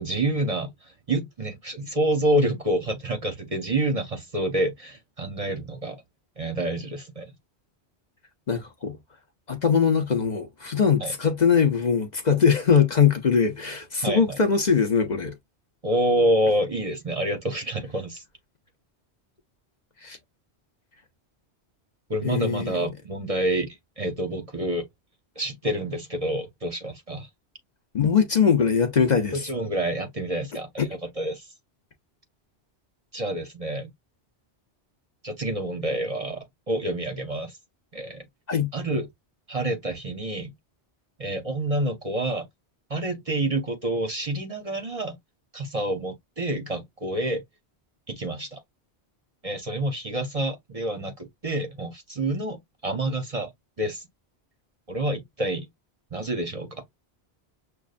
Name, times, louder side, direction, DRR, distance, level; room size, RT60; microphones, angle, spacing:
voice 1, 0.0-6.0 6.4-7.3 11.0-11.1 14.0-14.4 15.8-18.2 22.1-24.8 25.4-27.3 29.3-30.9 31.2-31.5 33.1-33.9 35.2-37.6 37.9-38.2 38.7-39.1 39.5-40.5 41.2-42.5 42.9-45.2 45.5-47.4 48.1-48.6 49.4-53.5 53.8-54.0 54.9-55.7 56.1-56.8, right 1 dB, 40° right, 0.7 m, -28 dB
voice 2, 8.5-9.0 9.5-15.3 20.0-20.2 22.2-22.7 27.9-29.5 30.8-30.9 38.5-38.7, left 6 dB, 45° left, 0.8 m, -21 dB
6.4 x 2.3 x 2.4 m
omnidirectional pair, 1.1 m